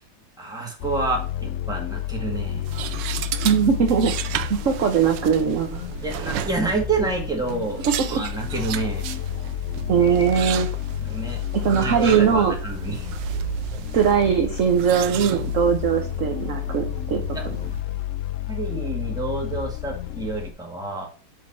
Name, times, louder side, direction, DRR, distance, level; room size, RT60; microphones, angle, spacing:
voice 1, 0.4-2.6 6.0-7.8 8.1-9.1 11.0-11.4 11.7-13.1 17.3-17.5 18.5-21.1, right 3 dB, ahead, -1 dB, 1.7 m, -28 dB
sound 1, 0.8-20.5, left 13 dB, 90° left, 0.7 m, -31 dB
sound 2, 2.3-17.8, right 11 dB, 80° right, 1.2 m, -34 dB
voice 2, 3.4-4.1 4.5-5.8 7.9-8.2 9.9-10.7 11.5-12.5 13.9-17.2, right 7 dB, 55° right, 4 dB, 1.0 m, -20 dB
7.0 x 4.8 x 4.2 m, 0.39 s
omnidirectional pair, 2.0 m